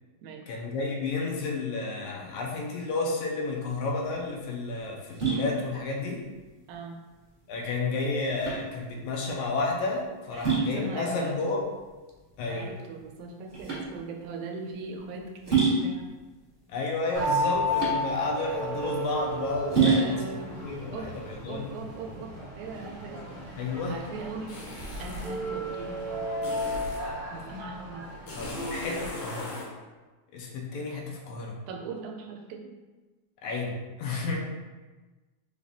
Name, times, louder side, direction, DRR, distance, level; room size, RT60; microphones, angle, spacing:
voice 1, 0.5-6.2 7.5-11.7 12.4-12.7 16.7-20.2 20.5-21.7 23.6-24.0 28.4-29.6 30.3-31.6 33.4-34.4, left 3 dB, 85° left, -1 dB, 2.0 m, -31 dB
sound 1, 3.6-22.2, right 4 dB, 35° right, 0.9 m, -31 dB
voice 2, 6.7-7.0 10.3-11.4 12.5-16.1 19.8-20.6 20.9-21.1 21.5-23.4 23.9-26.7 27.3-28.1 31.7-32.7, right 3 dB, 90° right, 2 dB, 2.0 m, -40 dB
sound 2, 17.1-29.1, equal, 55° right, 2.1 m, -33 dB
sound 3, 24.5-25.4 26.4-27.1 28.3-29.7, left 1 dB, 70° left, 1.7 m, -37 dB
5.1 x 2.4 x 3.5 m, 1.2 s
omnidirectional pair, 3.3 m